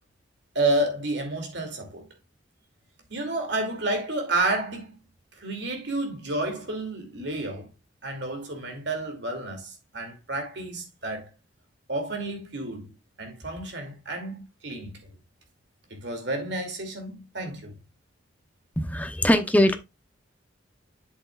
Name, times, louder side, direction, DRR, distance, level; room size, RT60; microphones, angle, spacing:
voice 1, 0.5-2.1 3.1-5.0 5.4-7.7 8.0-11.3 11.9-12.9 13.2-15.0 15.9-17.7, right 2 dB, 60° right, 2.5 m, -30 dB
voice 2, 18.8-19.8, left 1 dB, 10° left, 0.7 m, -21 dB
7.9 x 7.5 x 2.4 m
head